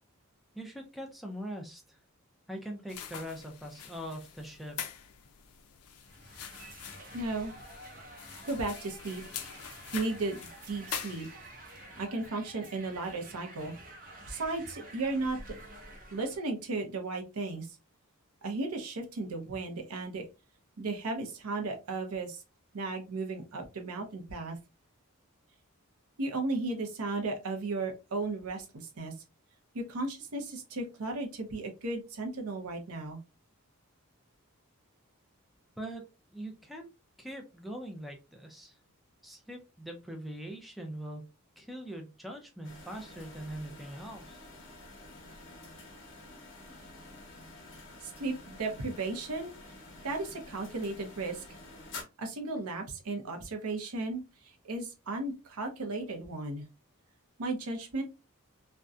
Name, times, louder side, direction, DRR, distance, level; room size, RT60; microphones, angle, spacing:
voice 1, 0.5-2.0 2.5-4.8 35.8-36.0 36.3-36.9 37.2-38.8 39.2-41.3 41.6-44.5, right 1 dB, ahead, 2 dB, 0.4 m, -42 dB
sound 1, 2.9-11.7, left 8 dB, 85° left, 0.4 m, -44 dB
sound 2, 6.0-16.4, right 1 dB, 40° right, 0.6 m, -50 dB
voice 2, 7.1-7.5 8.4-9.2 9.9-10.4 10.7-11.3 12.0-13.8 14.3-15.4 16.1-17.8 18.4-20.2 20.8-22.4 22.7-24.6 26.2-29.1 29.7-33.2 48.0-49.5 50.0-51.6 52.2-56.6 57.4-58.0, right 3 dB, 90° right, 4 dB, 0.7 m, -35 dB
sound 3, 42.6-52.0, left 2 dB, 55° left, 0.8 m, -49 dB
2.6 x 2.1 x 2.3 m, 0.28 s
head